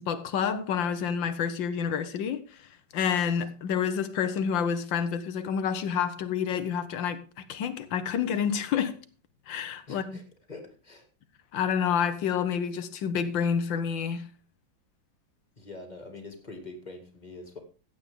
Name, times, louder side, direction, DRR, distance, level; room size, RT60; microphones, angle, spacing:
voice 1, 0.0-7.2 7.5-9.0 9.5-10.2 11.5-14.3, left 7 dB, 85° left, 1.7 m, -28 dB
voice 2, 9.9-11.1 15.6-17.6, left 3 dB, 25° left, 2.2 m, -44 dB
15.0 x 8.5 x 3.6 m
omnidirectional pair, 2.0 m